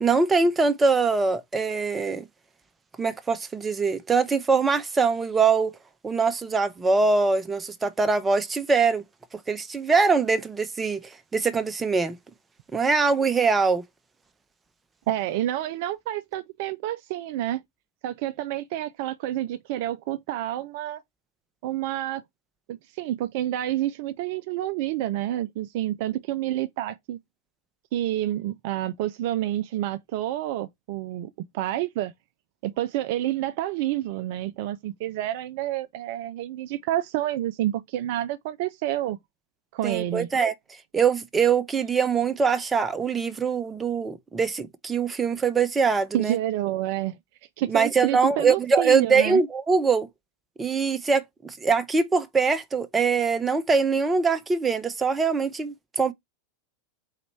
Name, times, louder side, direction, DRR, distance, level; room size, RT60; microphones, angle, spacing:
voice 1, 0.0-2.2 3.0-5.7 6.0-9.0 9.3-12.2 12.7-13.8 39.8-40.5 40.9-46.4 47.7-50.1 50.6-56.1, right 4 dB, 15° right, 0.6 m, -23 dB
voice 2, 15.1-17.6 18.0-21.0 21.6-22.2 22.7-27.2 27.9-32.1 32.6-39.2 39.7-40.3 46.1-47.2 47.6-49.4, right 13 dB, 50° right, 0.3 m, -29 dB
4.1 x 3.0 x 4.3 m
figure-of-eight pair, 90°, 0 cm